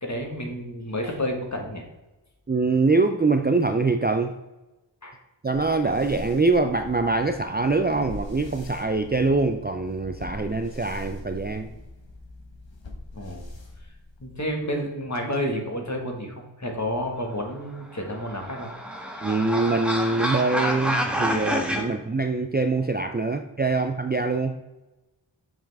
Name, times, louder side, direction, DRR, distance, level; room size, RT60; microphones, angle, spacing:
voice 1, 0.0-1.8 5.0-5.2 13.1-13.5 14.2-18.7, equal, 35° left, 2 dB, 1.6 m, -30 dB
voice 2, 2.5-4.3 5.4-11.7 19.2-24.6, right 3 dB, 25° right, 6 dB, 0.4 m, -24 dB
sound 1, 5.5-14.4, left 2 dB, 70° left, 1.3 m, -42 dB
sound 2, 17.9-21.8, equal, ahead, 1.2 m, -28 dB
7.0 x 5.6 x 3.5 m, 1.1 s
wide cardioid pair, 40°, 46 cm